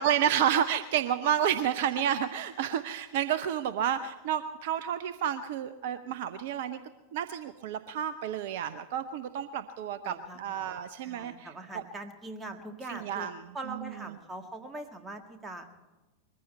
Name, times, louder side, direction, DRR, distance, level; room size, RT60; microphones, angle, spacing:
voice 1, 0.0-6.8 7.1-11.8 12.9-13.4, right 9 dB, 50° right, 13 dB, 0.6 m, -30 dB
voice 2, 10.0-10.6 11.0-13.3 13.5-15.7, right 2 dB, 15° right, 6 dB, 1.8 m, -42 dB
21.5 x 15.0 x 4.2 m, 1.1 s
figure-of-eight pair, 90°, 0 cm